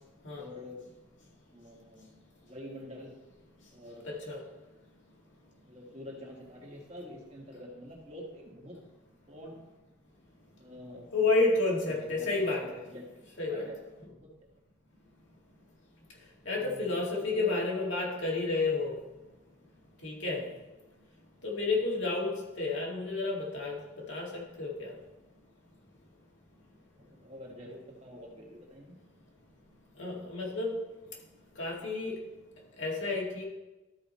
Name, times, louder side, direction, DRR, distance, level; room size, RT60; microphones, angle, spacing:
voice 1, 0.4-0.9 1.5-2.1 2.4-3.1 3.7-4.1 5.6-8.8 9.3-9.6 10.6-11.1 11.9-13.8 14.1-14.3 16.6-16.9 17.3-17.6 20.4-20.5 26.9-29.0, left 1 dB, 30° right, -2 dB, 1.6 m, -46 dB
voice 2, 4.0-4.4 11.1-12.8 13.4-13.7 16.5-18.9 20.0-20.4 21.4-23.8 24.1-24.9 30.0-30.8 31.6-32.2 32.8-33.4, left 3 dB, 70° left, -3 dB, 2.2 m, -30 dB
13.0 x 4.8 x 4.2 m, 1.1 s
head